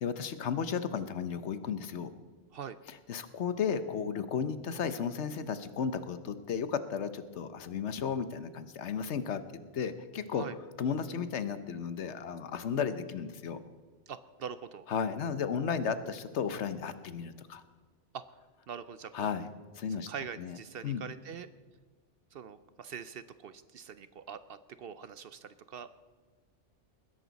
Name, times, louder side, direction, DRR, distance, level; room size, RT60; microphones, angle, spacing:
voice 1, 0.0-2.1 2.9-9.4 9.7-10.4 10.8-13.6 14.9-17.6 19.1-20.1 20.4-20.6 20.8-21.0, left 6 dB, 70° left, 12 dB, 1.1 m, -34 dB
voice 2, 14.1-14.9 18.1-18.2 18.7-19.3 20.1-21.5 22.3-25.9, right 7 dB, 60° right, 13 dB, 0.7 m, -43 dB
20.0 x 11.0 x 4.0 m, 1.4 s
omnidirectional pair, 1.2 m